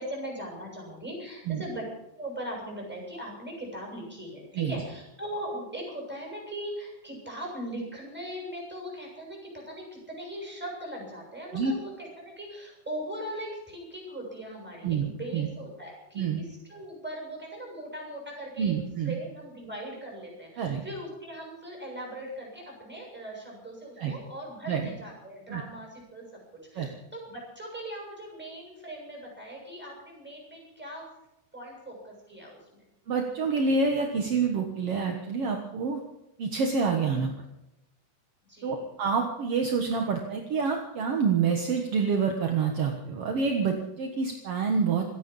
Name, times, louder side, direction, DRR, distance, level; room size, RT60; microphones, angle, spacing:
voice 1, 0.0-1.9 2.2-18.7 19.0-26.4 26.7-31.1 31.5-32.8 38.5-38.8 43.1-43.3, right 1 dB, ahead, -2 dB, 6.8 m, -39 dB
voice 2, 18.6-19.2 20.6-20.8 24.0-24.1 24.7-24.9 25.5-25.6 26.8-26.9 33.1-36.0 36.4-37.3 38.6-45.1, right 5 dB, 60° right, 3 dB, 1.6 m, -27 dB
27.0 x 9.6 x 5.5 m, 0.89 s
omnidirectional pair, 4.5 m